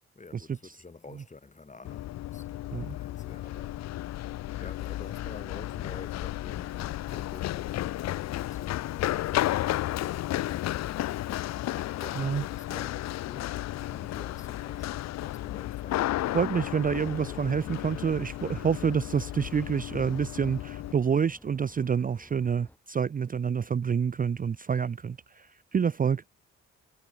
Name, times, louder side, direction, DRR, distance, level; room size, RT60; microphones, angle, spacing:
voice 1, 0.1-3.8 4.6-9.7 11.4-16.4, left 3 dB, 25° left, 4.0 m, -49 dB
Run, 1.8-20.9, left 15 dB, 65° left, 0.5 m, -33 dB
voice 2, 16.3-26.2, right 7 dB, 30° right, 0.5 m, -28 dB
sound 1, 16.8-22.8, left 1 dB, 5° left, 3.3 m, -51 dB
cardioid pair, 80°, 29 cm